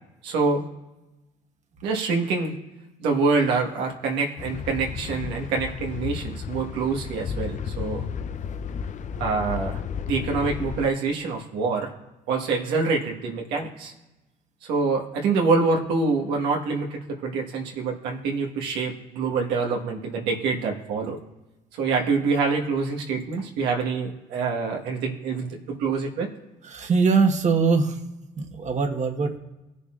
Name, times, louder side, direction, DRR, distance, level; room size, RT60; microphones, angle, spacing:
voice 1, 0.2-0.7 1.8-2.5 3.0-8.0 9.2-9.8 10.1-11.9 12.3-13.9 14.7-21.2 21.8-26.3, right 4 dB, 85° right, 0 dB, 1.5 m, -26 dB
sound 1, 4.4-10.9, left 7 dB, 50° left, 0.6 m, -33 dB
voice 2, 26.6-28.0 28.4-29.4, right 5 dB, 45° right, 4 dB, 1.3 m, -22 dB
19.0 x 6.7 x 2.5 m, 1.1 s
supercardioid pair, 70°, 17 cm